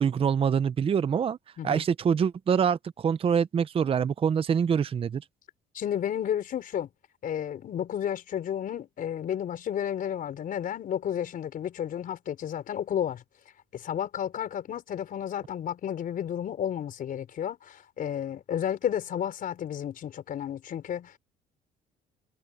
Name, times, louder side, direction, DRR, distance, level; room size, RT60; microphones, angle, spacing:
voice 1, 0.0-1.4 1.6-5.2, right 7 dB, 35° right, 0.7 m, -25 dB
voice 2, 5.7-6.9 7.2-13.2 13.7-21.2, left 9 dB, 55° left, 4.9 m, -32 dB
cardioid pair, 110°, 17 cm